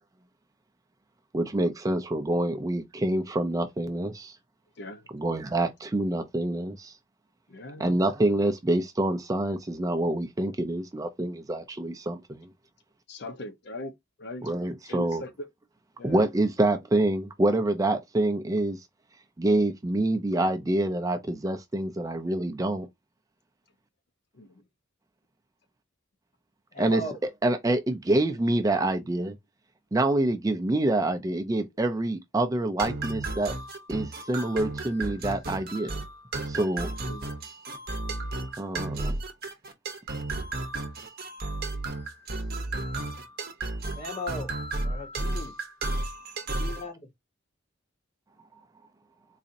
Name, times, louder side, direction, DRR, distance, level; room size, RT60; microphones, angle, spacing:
voice 1, 1.3-4.4 5.1-7.0 7.8-12.5 14.4-15.2 16.0-18.9 19.4-22.9 26.8-27.0 27.4-29.4 29.9-33.6 33.9-36.0 36.5-36.9 38.6-39.1, right 1 dB, 20° right, 0.4 m, -26 dB
voice 2, 4.8-5.1 7.5-8.0 13.1-13.9 14.2-14.5 14.9-15.5 16.0-16.2 24.3-24.6 26.9-27.1 37.1-37.3, left 1 dB, 60° left, 0.6 m, -40 dB
voice 3, 26.7-27.2 44.0-44.5 44.8-45.6 46.6-47.0, left 1 dB, 35° left, 1.0 m, -36 dB
sound 1, 32.8-46.9, right 2 dB, 50° right, 0.7 m, -33 dB
4.0 x 2.6 x 2.5 m
head